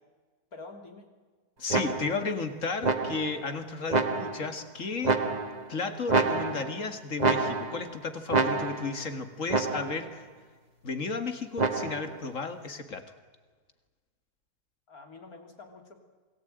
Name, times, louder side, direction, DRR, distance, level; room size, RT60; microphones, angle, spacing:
voice 1, 0.5-1.1 14.9-16.0, left 3 dB, 70° left, 4 dB, 3.6 m, -47 dB
voice 2, 1.6-5.2 5.7-10.3 10.8-13.0, left 4 dB, 55° left, 8 dB, 2.3 m, -33 dB
sound 1, 1.7-2.3 2.8-3.4 3.9-4.6 5.0-5.7 6.1-6.8 7.2-7.9 8.3-9.0 9.5-10.1 11.6-12.2, right 3 dB, 30° right, 1.2 m, -28 dB
27.5 x 19.0 x 9.1 m, 1.4 s
omnidirectional pair, 1.6 m